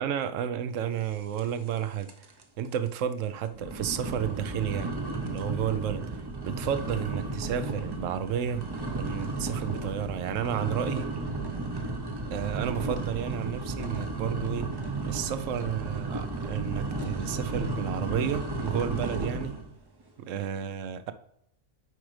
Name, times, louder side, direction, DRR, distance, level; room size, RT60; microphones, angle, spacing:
voice 1, 0.0-2.1 2.6-5.0 5.2-6.0 6.4-8.7 9.0-11.1 12.3-14.7 15.1-19.6 20.2-21.1, right 9 dB, 85° right, 0.9 m, -31 dB
sound 1, 1.4-1.8 2.0-2.4 2.9-3.0 3.5-19.7, right 2 dB, 30° right, 0.5 m, -33 dB
7.8 x 5.1 x 3.2 m
omnidirectional pair, 1.3 m